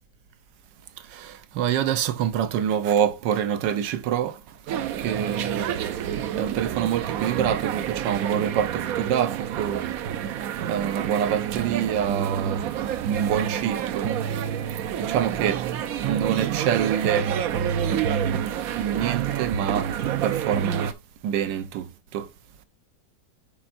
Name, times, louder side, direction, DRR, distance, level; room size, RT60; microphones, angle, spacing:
voice 1, 1.6-4.3 5.0-5.7 6.3-9.8 10.7-12.6 13.1-14.1 15.0-15.6 16.0-17.3 18.7-19.9 20.2-20.8 21.2-21.8 22.1-22.2, right 9 dB, 80° right, 1.4 m, -26 dB
sound 1, 4.7-20.9, right 9 dB, 65° right, 1.0 m, -28 dB
11.0 x 4.3 x 2.5 m
omnidirectional pair, 1.9 m